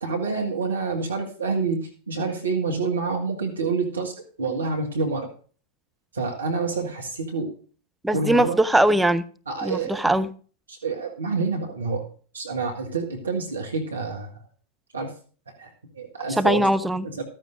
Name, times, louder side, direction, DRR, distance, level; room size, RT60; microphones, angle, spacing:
voice 1, 0.0-5.3 6.1-7.5 8.1-8.6 9.5-10.1 10.7-12.1 12.3-14.3 14.9-15.1 15.6-16.6 17.0-17.2, right 4 dB, 75° right, 1 dB, 1.6 m, -28 dB
voice 2, 8.0-9.2 9.6-10.3 16.4-17.1, right 1 dB, 5° right, 10 dB, 0.5 m, -20 dB
15.0 x 13.0 x 2.6 m, 0.41 s
figure-of-eight pair, 90°, 0 cm